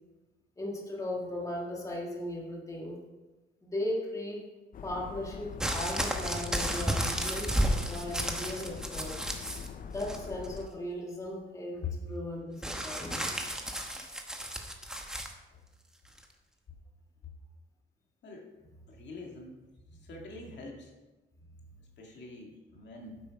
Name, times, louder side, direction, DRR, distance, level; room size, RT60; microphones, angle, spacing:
voice 1, 0.6-3.0 3.6-4.4 4.8-9.2 9.9-13.5, left 1 dB, 15° left, -2 dB, 1.7 m, -37 dB
sound 1, 4.7-10.7, left 6 dB, 45° left, 0.5 m, -43 dB
sound 2, 5.6-9.7 10.0-10.6 12.6-15.3 16.2-16.3, equal, 5° right, 1.0 m, -33 dB
voice 2, 18.9-19.6 20.0-20.9 22.0-23.2, left 5 dB, 60° left, 0 dB, 2.0 m, -43 dB
10.0 x 8.0 x 4.7 m, 1.2 s
cardioid pair, 150°, 21 cm